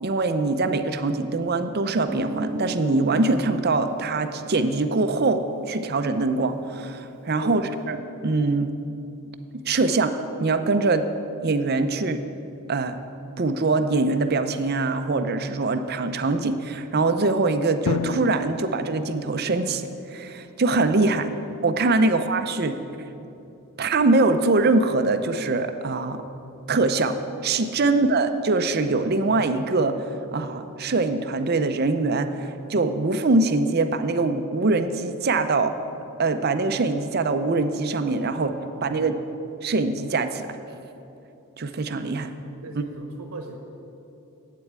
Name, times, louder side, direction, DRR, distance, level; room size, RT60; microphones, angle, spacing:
voice 1, 0.0-7.6 7.9-8.0 8.2-8.7 9.7-11.1 11.4-12.2 12.7-13.0 13.4-21.3 21.6-22.8 23.8-26.2 26.7-27.1 27.4-35.7 36.2-38.5 38.8-39.1 39.6-40.5 41.6-42.3 42.8-42.9, right 3 dB, 45° right, 9 dB, 0.6 m, -23 dB
Guitar, 2.1-6.6, right 1 dB, 10° right, 0.9 m, -37 dB
Drum, 17.9-20.4, left 6 dB, 75° left, 0.3 m, -32 dB
voice 2, 38.7-39.2 42.6-43.6, right 3 dB, 80° right, 3 dB, 1.0 m, -40 dB
8.5 x 8.0 x 8.7 m, 2.9 s
head